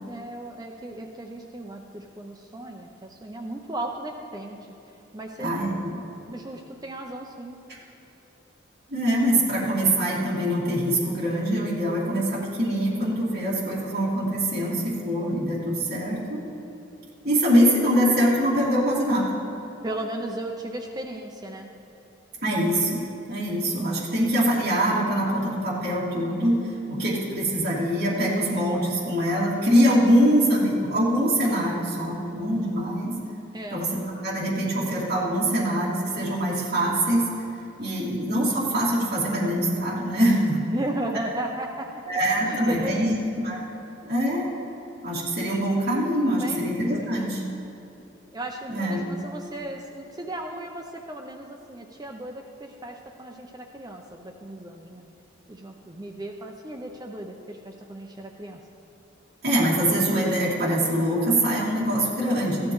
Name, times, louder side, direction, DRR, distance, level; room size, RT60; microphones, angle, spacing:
voice 1, 0.0-4.7 5.1-5.5 6.3-7.6 19.8-21.7 33.5-33.8 40.7-42.0 42.4-43.2 46.4-46.6 46.9-47.4 48.3-55.0 55.5-58.6, right 1 dB, 20° right, 2 dB, 0.5 m, -35 dB
voice 2, 5.4-5.7 8.9-16.4 17.2-19.3 22.4-23.0 23.3-33.1 33.7-37.3 37.8-40.6 42.1-43.1 43.4-43.6 44.0-44.5 45.0-47.4 48.7-49.0 59.4-62.7, equal, 55° right, -8 dB, 2.5 m, -23 dB
15.0 x 11.5 x 3.1 m, 2.9 s
head